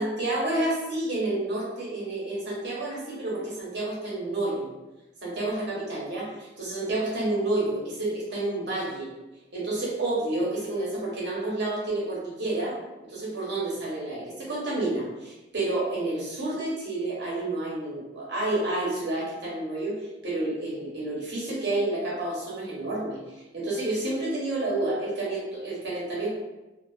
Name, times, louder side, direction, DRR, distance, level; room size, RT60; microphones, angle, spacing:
voice 1, 0.0-4.7 5.2-9.1 9.5-12.7 13.0-20.0 20.2-26.3, right 2 dB, 70° right, -5 dB, 0.9 m, -29 dB
2.5 x 2.3 x 2.4 m, 1.0 s
head